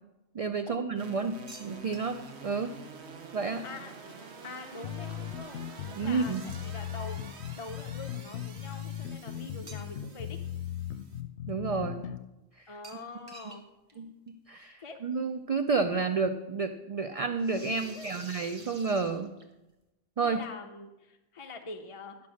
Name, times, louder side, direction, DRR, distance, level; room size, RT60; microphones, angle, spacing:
voice 1, 0.3-2.7 3.3-3.6 5.9-6.4 11.5-12.0 14.0-19.3 20.2-20.4, right 4 dB, 55° right, 9 dB, 0.4 m, -30 dB
sound 1, 0.9-11.2, right 4 dB, 80° right, 1.3 m, -49 dB
sound 2, 1.5-2.5 6.1-7.0 9.7-10.3 10.6-10.7 12.8-13.6 13.9-14.0 14.3-14.4 15.6-15.7 17.4-19.7, right 3 dB, 30° right, 1.1 m, -50 dB
voice 2, 3.6-4.2 4.4-5.6 5.9-6.3 6.6-7.2 7.5-10.4 12.7-13.6 13.9-14.1 14.8-15.0 17.8-18.2 20.2-22.3, left 3 dB, 35° left, 4 dB, 0.7 m, -44 dB
sound 3, 4.8-12.2, left 10 dB, 85° left, 0.9 m, -38 dB
11.5 x 6.0 x 6.2 m, 1.0 s
omnidirectional pair, 1.1 m